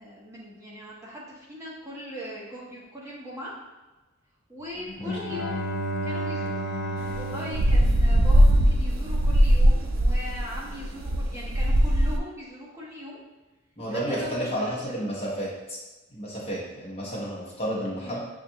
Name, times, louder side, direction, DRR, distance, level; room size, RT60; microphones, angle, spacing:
voice 1, 0.0-3.5 4.5-5.6 6.0-6.7 7.1-13.2 13.9-15.1 18.0-18.2, equal, 15° right, -7 dB, 0.8 m, -39 dB
Bowed string instrument, 4.9-8.9, right 1 dB, 50° left, 0.4 m, -32 dB
sound 1, 7.1-12.2, equal, 60° right, 0.4 m, -20 dB
voice 2, 13.8-15.8 16.1-18.2, right 1 dB, 25° left, -5 dB, 0.8 m, -31 dB
6.5 x 2.4 x 2.7 m, 1.1 s
head